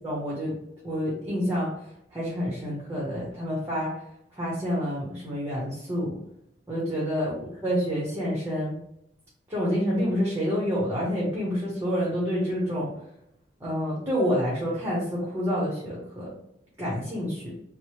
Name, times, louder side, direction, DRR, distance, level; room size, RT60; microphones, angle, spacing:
voice 1, 0.0-0.6 0.8-1.8 2.1-4.0 4.4-6.2 6.7-7.3 7.6-8.8 9.5-12.9 13.6-16.4 16.8-17.5, equal, 15° right, -6 dB, 0.8 m, -28 dB
3.2 x 2.0 x 4.2 m, 0.79 s
head